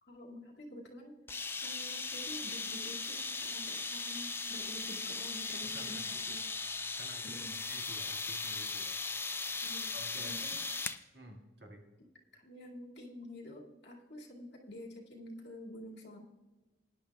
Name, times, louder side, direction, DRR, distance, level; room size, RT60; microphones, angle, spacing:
voice 1, 0.0-6.4 7.2-7.6 9.6-9.9 10.2-10.6 12.3-16.2, left 1 dB, 65° left, -2 dB, 2.3 m, -49 dB
sound 1, 1.3-11.0, left 4 dB, 10° left, 0.3 m, -38 dB
voice 2, 5.6-6.0 7.0-7.4 7.7-9.0 9.9-10.3 11.1-11.8, equal, 55° right, 1 dB, 2.0 m, -52 dB
20.0 x 10.5 x 2.3 m, 1.2 s
head